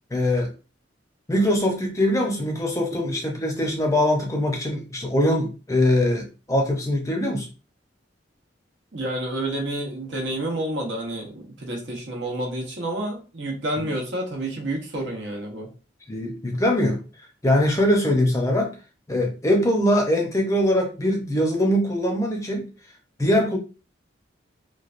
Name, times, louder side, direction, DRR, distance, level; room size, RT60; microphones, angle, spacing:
voice 1, 0.1-0.5 1.3-7.5 16.1-17.0 17.4-18.7 19.1-22.7 23.2-23.6, left 1 dB, 15° left, 0.6 m, -22 dB
voice 2, 8.9-15.7, right 1 dB, 65° right, 0.9 m, -29 dB
3.1 x 2.2 x 2.4 m
head